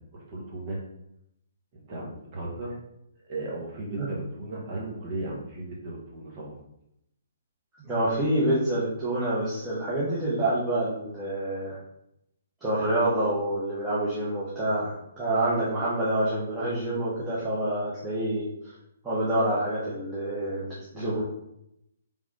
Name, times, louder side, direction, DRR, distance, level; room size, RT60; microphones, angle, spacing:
voice 1, 0.1-0.8 1.9-2.7 3.2-6.6, right 2 dB, 40° right, -4 dB, 1.6 m, -35 dB
voice 2, 7.8-11.8 12.6-18.7 19.0-21.2, right 1 dB, 10° right, -10 dB, 1.2 m, -27 dB
3.7 x 3.6 x 3.2 m, 0.79 s
figure-of-eight pair, 130°, 0 cm